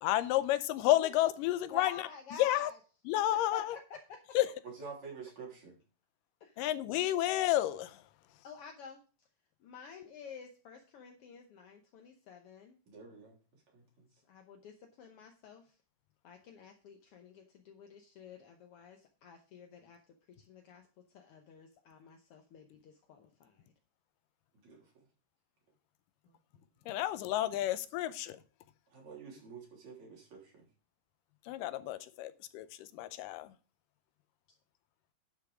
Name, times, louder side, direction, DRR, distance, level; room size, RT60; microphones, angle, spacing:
voice 1, 0.0-2.7 3.1-3.8 4.3-4.5 6.6-8.0 26.9-28.4 31.5-33.5, left 14 dB, 90° left, 14 dB, 2.4 m, -31 dB
voice 2, 1.7-2.7 3.3-4.2 6.4-6.6 8.4-9.0 9.6-12.8 14.3-15.7 16.2-20.0 20.3-23.6, left 6 dB, 70° left, 4 dB, 1.4 m, -50 dB
voice 3, 4.6-5.8 12.9-14.1 24.6-25.0 26.8-26.9 28.9-30.7, right 5 dB, 60° right, -2 dB, 4.6 m, -49 dB
11.0 x 5.9 x 5.0 m, 0.35 s
omnidirectional pair, 3.7 m